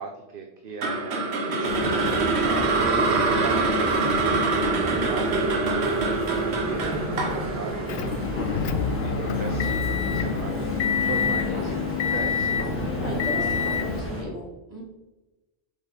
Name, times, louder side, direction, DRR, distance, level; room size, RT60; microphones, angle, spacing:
voice 1, 0.0-2.7 3.3-3.9 4.2-8.6 9.0-10.7 11.1-12.6, right 5 dB, 60° right, 4 dB, 0.9 m, -38 dB
sound 1, 0.8-9.0, right 3 dB, 80° right, 1.2 m, -25 dB
sound 2, 1.6-14.2, equal, 10° left, 1.8 m, -32 dB
voice 2, 4.7-5.1 13.0-14.4 14.7-14.8, equal, 40° right, -4 dB, 2.7 m, -35 dB
Motor vehicle (road) / Engine, 7.9-14.0, left 7 dB, 75° left, 0.8 m, -27 dB
7.1 x 5.5 x 4.0 m, 1.1 s
omnidirectional pair, 1.1 m